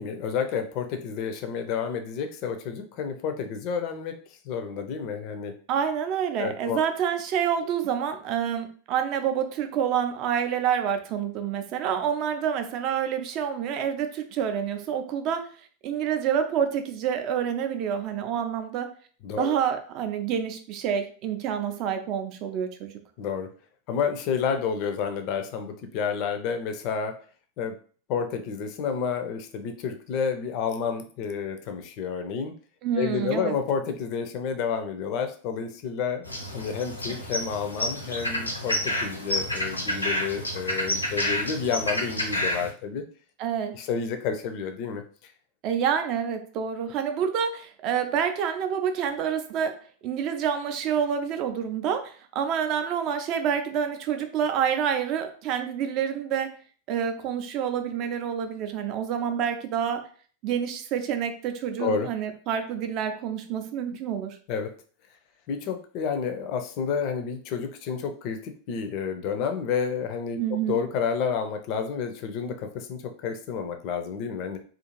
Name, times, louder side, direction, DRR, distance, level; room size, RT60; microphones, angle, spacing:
voice 1, 0.0-4.2 4.4-5.5 6.4-6.8 19.2-19.6 23.2-23.5 23.9-27.2 27.6-27.7 28.1-32.5 33.0-36.2 36.5-43.0 43.7-45.0 61.8-62.1 64.5-64.7 65.5-70.4 70.7-74.6, left 6 dB, 40° left, 7 dB, 0.4 m, -30 dB
voice 2, 5.7-15.5 15.8-18.9 19.4-22.9 32.8-33.6 43.4-43.8 45.6-49.8 50.0-56.5 56.9-60.1 60.4-64.4 70.4-70.8, right 8 dB, 40° right, 7 dB, 0.4 m, -28 dB
sound 1, 36.2-42.7, left 1 dB, 85° left, 0.6 m, -29 dB
2.5 x 2.4 x 2.9 m, 0.43 s
figure-of-eight pair, 90°, 0 cm